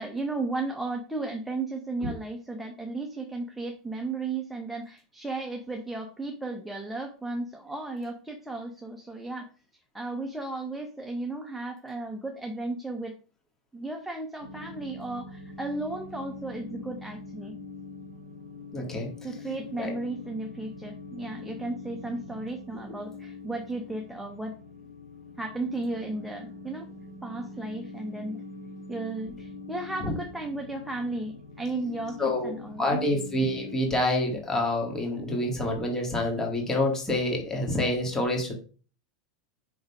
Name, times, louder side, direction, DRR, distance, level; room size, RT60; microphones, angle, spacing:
voice 1, 0.0-9.5 9.9-13.2 13.7-17.6 19.2-24.6 25.4-26.9 27.2-28.4 28.9-33.1, right 2 dB, ahead, 2 dB, 0.9 m, -34 dB
sound 1, 14.4-33.8, left 3 dB, 85° left, 2.7 m, -43 dB
voice 2, 18.7-19.1 19.8-19.9 30.0-30.1 32.2-32.5 32.8-38.5, left 1 dB, 15° left, 0 dB, 1.8 m, -27 dB
5.1 x 3.9 x 5.4 m, 0.39 s
supercardioid pair, 120°, 4 cm